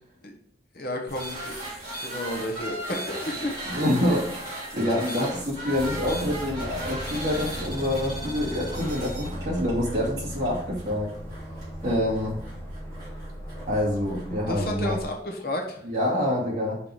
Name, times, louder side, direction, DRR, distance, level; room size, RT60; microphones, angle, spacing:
voice 1, 0.7-1.6 2.0-3.5 14.5-15.8, left 1 dB, 55° left, 1 dB, 1.2 m, -32 dB
sound 1, 1.1-14.3, right 1 dB, 25° right, 2.8 m, -37 dB
voice 2, 3.6-11.1 11.8-12.4 13.7-15.0 15.8-16.8, left 1 dB, 40° right, -4 dB, 2.3 m, -26 dB
Aircraft, 5.7-15.0, equal, 10° left, 1.3 m, -37 dB
5.7 x 4.8 x 4.8 m, 0.70 s
head